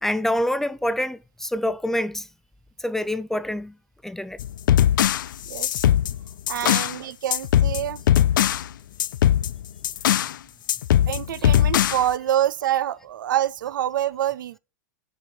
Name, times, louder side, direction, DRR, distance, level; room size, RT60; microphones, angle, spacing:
voice 1, 0.0-2.3 2.8-3.8 4.0-4.4 6.6-6.8 11.4-11.5, left 1 dB, 5° left, 0.3 m, -26 dB
sound 1, 4.4-7.0 7.3-8.7 9.0-10.4 10.7-12.1, left 11 dB, 90° left, 0.4 m, -20 dB
voice 2, 6.5-8.0 11.1-14.6, right 12 dB, 90° right, 0.4 m, -26 dB
6.0 x 4.8 x 5.4 m
hypercardioid pair, 130°, 10 cm